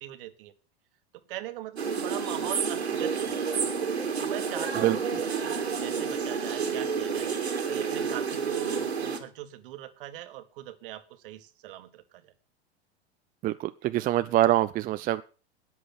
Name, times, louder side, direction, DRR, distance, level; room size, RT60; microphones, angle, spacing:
voice 1, 0.0-0.5 1.3-3.7 4.2-7.3 7.7-12.3, right 14 dB, 55° right, 10 dB, 1.6 m, -40 dB
sound 1, 1.8-9.2, right 5 dB, 80° right, 2.2 m, -30 dB
voice 2, 13.4-15.2, right 14 dB, 25° right, 11 dB, 0.5 m, -24 dB
13.5 x 9.3 x 6.0 m, 0.37 s
figure-of-eight pair, 90°, 32 cm